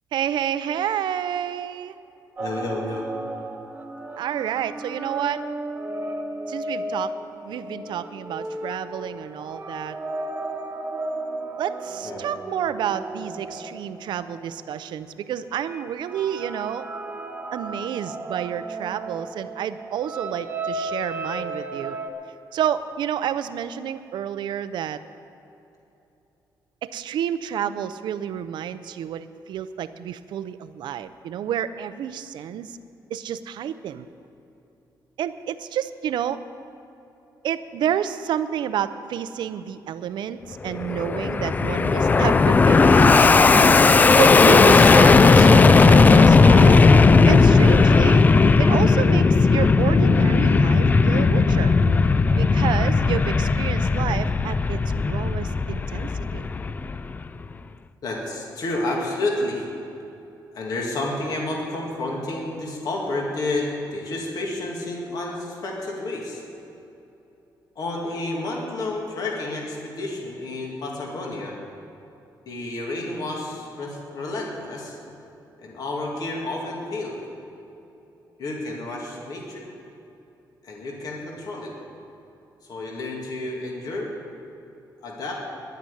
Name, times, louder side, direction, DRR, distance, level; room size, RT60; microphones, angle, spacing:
voice 1, 0.1-2.0 4.2-5.4 6.5-7.1 7.4-10.0 11.6-16.9 17.5-22.0 22.5-25.0 26.8-32.8 33.1-34.1 35.2-36.4 37.4-43.8 44.2-46.8 47.2-48.2 48.6-51.7 52.3-56.5, right 9 dB, 85° right, 12 dB, 0.6 m, -29 dB
voice 2, 2.4-3.1 12.0-12.2 58.0-59.7 60.5-66.4 67.8-71.6 72.5-75.0 75.6-77.2 78.4-79.7 80.6-81.7 82.6-84.1 85.0-85.4, left 2 dB, 55° left, -1 dB, 2.3 m, -30 dB
sound 1, 2.4-14.9 15.6-22.1, right 2 dB, 25° right, 1.2 m, -34 dB
Fixed-wing aircraft airplane, 40.7-57.3, left 4 dB, 20° left, 0.3 m, -16 dB
11.0 x 9.3 x 9.9 m, 2.9 s
wide cardioid pair, 165°, 8 cm